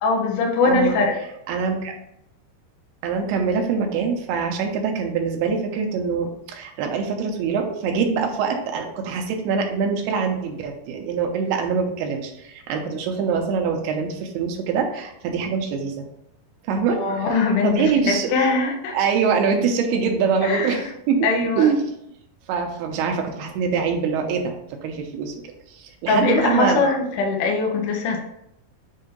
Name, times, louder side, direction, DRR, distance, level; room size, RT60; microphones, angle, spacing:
voice 1, 0.0-1.2 16.9-19.0 20.4-20.9 21.2-21.7 26.1-28.2, left 3 dB, 70° left, 0 dB, 2.1 m, -21 dB
voice 2, 0.7-1.0 1.5-1.9 3.0-16.1 16.7-17.3 17.6-18.3 18.9-21.3 21.6-21.8 22.5-25.3 25.8-26.8, right 5 dB, 80° right, 3 dB, 2.7 m, -24 dB
7.7 x 2.8 x 5.1 m, 0.78 s
omnidirectional pair, 4.7 m